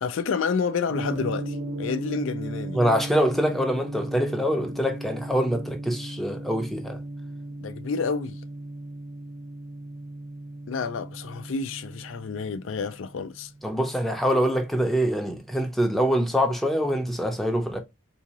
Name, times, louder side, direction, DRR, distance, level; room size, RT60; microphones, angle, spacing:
voice 1, 0.0-2.8 7.6-8.4 10.7-13.5, left 5 dB, 75° left, 0.4 m, -29 dB
Gong, 0.9-15.1, right 1 dB, 30° right, 0.7 m, -36 dB
voice 2, 2.7-7.0 13.6-17.8, equal, ahead, 0.6 m, -24 dB
3.7 x 2.8 x 2.8 m
head